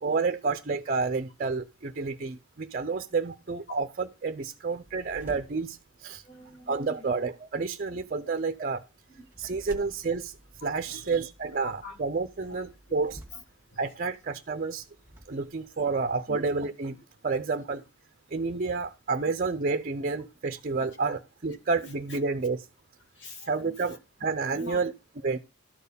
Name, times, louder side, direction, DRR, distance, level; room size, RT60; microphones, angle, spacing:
voice 1, 0.0-6.2 6.7-8.8 9.4-10.3 10.6-13.2 13.8-14.9 15.3-17.0 17.2-17.8 18.3-22.7 23.5-24.9 25.2-25.4, right 4 dB, 40° right, 0.5 m, -30 dB
sound 1, 4.8-15.3, equal, 10° right, 1.7 m, -53 dB
voice 2, 6.2-7.1 7.9-8.0 8.2-8.3 9.1-9.8 10.8-12.0 12.4-12.6 13.3-13.4 13.7-13.9 16.3-16.4 20.8-21.2 21.8-22.2 23.2-24.0 24.5-24.8, left 2 dB, 55° left, 1.8 m, -47 dB
12.5 x 4.5 x 6.8 m
head